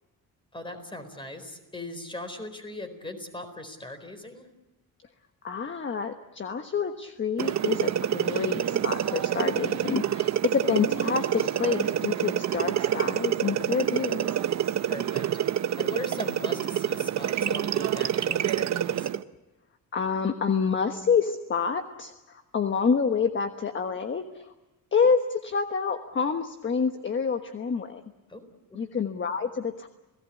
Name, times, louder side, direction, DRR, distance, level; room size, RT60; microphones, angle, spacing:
voice 1, 0.5-4.5 14.8-19.1 28.3-28.4 28.7-28.8, left 1 dB, 15° left, 8 dB, 4.3 m, -40 dB
voice 2, 5.4-14.3 19.9-24.5 24.9-28.0 28.7-29.9, left 6 dB, 35° left, 7 dB, 1.3 m, -28 dB
sound 1, 7.4-19.2, right 10 dB, 50° right, 0.9 m, -27 dB
29.0 x 18.0 x 8.5 m, 1.0 s
cardioid pair, 130°, 35 cm